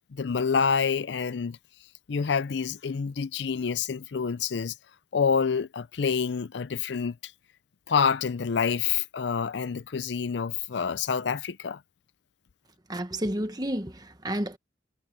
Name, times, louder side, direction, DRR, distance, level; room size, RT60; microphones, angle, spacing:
voice 1, 0.1-1.6 2.1-4.7 5.1-7.3 7.9-11.8, left 6 dB, 70° left, 0.5 m, -27 dB
voice 2, 12.9-14.6, right 1 dB, 20° right, 1.3 m, -31 dB
head